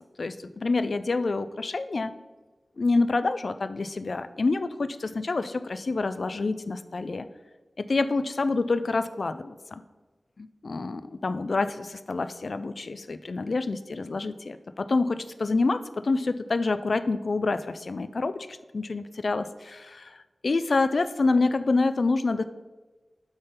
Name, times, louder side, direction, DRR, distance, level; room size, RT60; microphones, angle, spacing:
voice 1, 0.2-2.1 2.8-7.3 7.8-9.8 10.4-22.4, left 3 dB, 65° left, 12 dB, 0.4 m, -27 dB
8.0 x 3.8 x 5.2 m, 1.2 s
wide cardioid pair, 90°, 0 cm